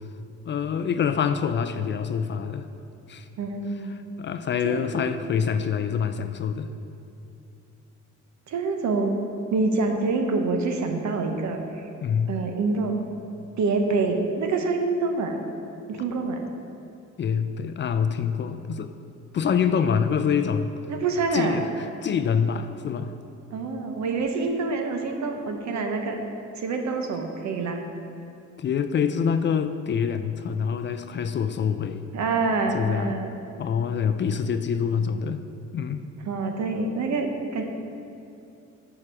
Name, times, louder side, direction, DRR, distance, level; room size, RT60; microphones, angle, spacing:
voice 1, 0.5-2.7 3.1-3.3 3.9-6.7 12.0-12.3 17.2-18.9 19.3-20.7 21.3-23.1 25.4-25.6 28.6-32.1 32.7-33.2 33.6-35.4 35.7-36.0, left 7 dB, 40° left, 9 dB, 0.4 m, -26 dB
voice 2, 3.4-4.0 4.6-5.0 8.5-9.2 9.5-11.9 12.3-13.0 13.6-15.4 15.9-16.4 19.5-19.6 20.9-21.6 23.5-26.2 26.6-27.8 32.1-33.3 36.3-37.6, right 3 dB, 65° right, 4 dB, 1.0 m, -26 dB
6.6 x 4.9 x 6.1 m, 2.8 s
cardioid pair, 90°, 30 cm